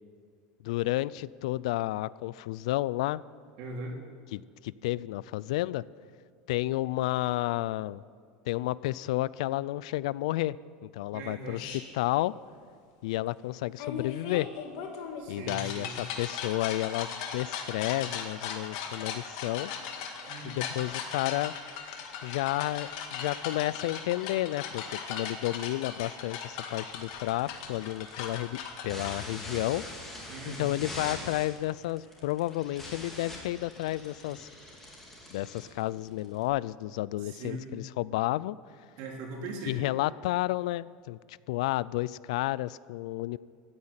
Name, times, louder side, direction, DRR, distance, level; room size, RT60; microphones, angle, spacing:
voice 1, 0.6-3.2 4.3-5.8 6.5-8.0 8.5-10.6 10.8-12.3 13.0-14.5 15.3-19.7 20.4-21.5 22.2-28.6 28.8-29.8 30.4-34.5 35.3-38.6 39.7-43.4, left 17 dB, 75° left, 20 dB, 0.4 m, -31 dB
voice 2, 3.6-4.0 11.1-11.6 15.2-16.0 20.2-20.7 30.3-30.8 34.2-34.3 35.2-36.2 37.1-37.6 39.0-39.8, right 2 dB, 45° right, 0 dB, 3.0 m, -41 dB
sound 1, 11.6-11.8 13.8-29.2, left 7 dB, 60° left, 1.9 m, -38 dB
sound 2, 26.9-36.4, left 1 dB, 10° left, 2.5 m, -43 dB
15.0 x 9.7 x 9.0 m, 2.1 s
supercardioid pair, 180°, 4 cm